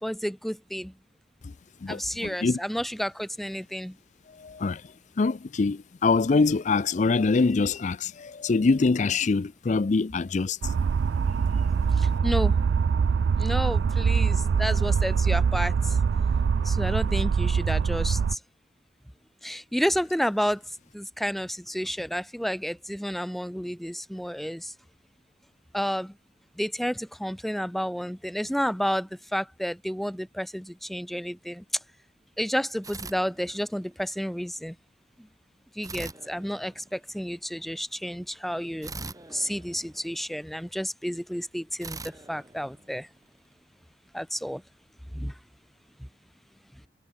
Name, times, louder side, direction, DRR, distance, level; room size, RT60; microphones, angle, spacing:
voice 1, 0.0-0.9 1.9-4.0 12.0-12.6 13.4-16.0 16.6-18.4 19.4-20.6 20.9-24.7 25.7-26.1 26.6-31.6 32.4-34.7 35.8-38.9 39.3-43.1 44.1-44.6 45.1-45.3, equal, ahead, 0.7 m, -31 dB
voice 2, 1.8-2.6 4.3-10.8, left 4 dB, 45° left, 0.4 m, -24 dB
sound 1, 10.6-18.4, right 6 dB, 70° right, 0.3 m, -24 dB
sound 2, 32.8-34.0 35.8-37.2 38.8-40.5 41.8-43.4, right 3 dB, 20° right, 5.8 m, -42 dB
head